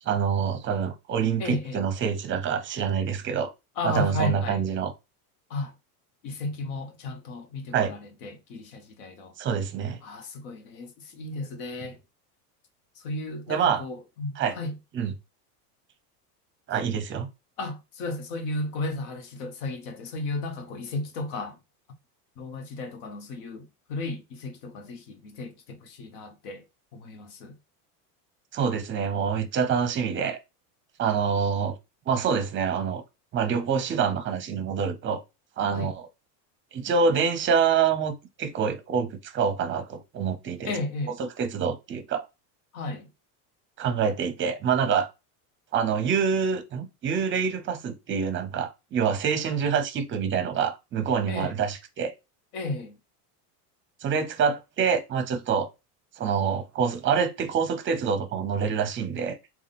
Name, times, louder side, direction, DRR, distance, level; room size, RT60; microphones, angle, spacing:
voice 1, 0.1-3.5 3.8-4.9 7.7-7.9 9.4-10.0 13.5-13.8 14.4-14.6 14.9-15.1 16.7-17.3 28.5-30.4 31.0-31.7 32.1-33.0 33.3-35.2 35.6-36.1 36.7-40.7 41.2-42.2 43.8-45.1 45.7-52.1 54.0-55.7 56.2-59.4, right 6 dB, 25° right, 0.6 m, -26 dB
voice 2, 1.4-1.8 3.8-4.6 5.5-5.7 6.2-9.3 10.0-12.0 13.0-14.8 17.6-21.6 22.4-26.6 26.9-27.5 35.7-35.9 40.6-41.2 42.7-43.1 51.3-51.5 52.5-53.0, left 2 dB, 70° left, 1.2 m, -34 dB
3.5 x 2.4 x 4.0 m
supercardioid pair, 125°, 46 cm